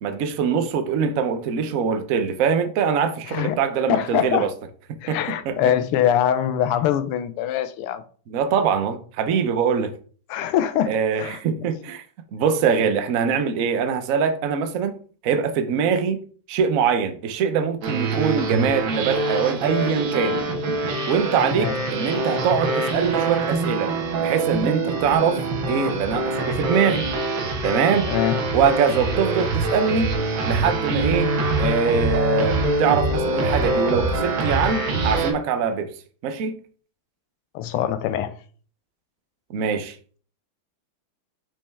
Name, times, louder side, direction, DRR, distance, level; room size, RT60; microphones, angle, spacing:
voice 1, 0.0-4.5 5.1-5.6 8.3-9.9 10.9-12.0 12.3-16.2 16.5-20.4 21.1-23.9 24.2-27.1 27.6-28.1 28.5-30.1 30.4-31.3 31.6-35.9 36.2-36.5 39.5-40.0, right 6 dB, 80° right, 0.7 m, -23 dB
voice 2, 3.9-4.5 5.0-8.0 10.3-11.4 21.6-21.8 28.1-28.4 37.5-38.3, left 10 dB, 85° left, 1.6 m, -23 dB
sound 1, 17.8-35.3, right 2 dB, 65° right, 1.8 m, -24 dB
5.6 x 5.3 x 3.4 m
omnidirectional pair, 2.4 m